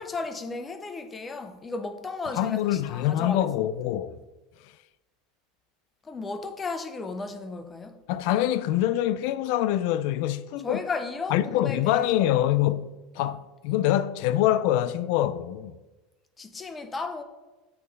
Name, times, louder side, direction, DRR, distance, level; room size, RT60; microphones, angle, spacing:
voice 1, 0.0-3.5 6.0-8.0 10.6-12.4 16.4-17.2, left 3 dB, 20° left, 0.6 m, -34 dB
voice 2, 2.4-4.2 8.1-10.8 11.3-15.8, left 13 dB, 65° left, 0.3 m, -25 dB
7.9 x 3.2 x 5.3 m
supercardioid pair, 130°, 0 cm